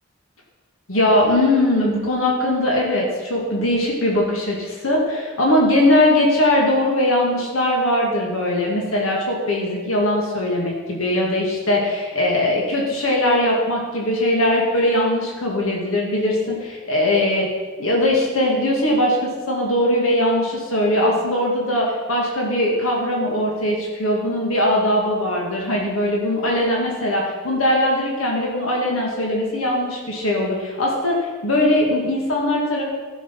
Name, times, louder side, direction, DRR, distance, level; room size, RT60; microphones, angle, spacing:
voice 1, 0.9-17.5 17.8-32.8, left 1 dB, 90° left, -2 dB, 2.0 m, -20 dB
13.0 x 6.2 x 5.7 m, 1.4 s
head